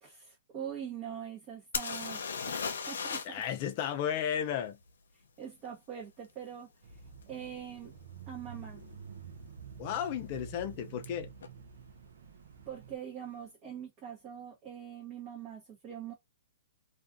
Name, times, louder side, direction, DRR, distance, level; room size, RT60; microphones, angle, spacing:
voice 1, 0.0-2.2 2.5-3.4 5.4-7.0 7.3-7.9 8.3-8.8 12.7-16.1, right 9 dB, 30° right, 0.9 m, -43 dB
sound 1, 1.7-3.5 3.7-3.8 7.2-7.3 8.0-8.2 8.4-9.0 11.0-11.1 11.4-11.5, left 5 dB, 80° left, 0.6 m, -36 dB
voice 2, 3.2-4.8 9.8-11.3, left 9 dB, 35° left, 0.5 m, -33 dB
Bicycle / Mechanisms, 6.8-13.0, right 6 dB, 70° right, 0.6 m, -49 dB
2.4 x 2.3 x 2.5 m
hypercardioid pair, 155°, 0 cm